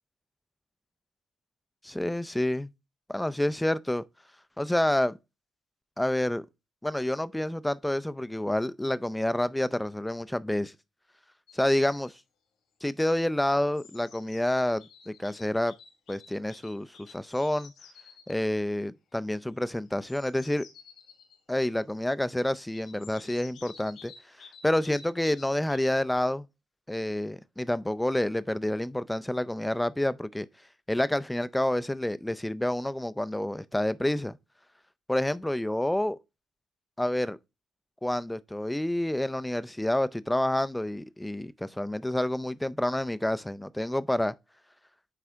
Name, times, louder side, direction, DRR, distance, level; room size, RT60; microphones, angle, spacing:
voice 1, 1.8-2.7 3.1-4.0 4.6-5.2 6.0-6.4 6.8-10.7 11.5-12.1 12.8-15.7 16.1-17.7 18.3-20.7 21.5-24.1 24.6-26.5 26.9-30.5 30.9-34.4 35.1-36.2 37.0-37.4 38.0-44.3, left 1 dB, 5° left, 0.4 m, -28 dB
sound 1, 11.5-12.1 13.2-18.5 19.9-21.4 22.7-26.1, left 5 dB, 80° left, 2.1 m, -53 dB
9.4 x 3.3 x 3.5 m
cardioid pair, 90°, 0 cm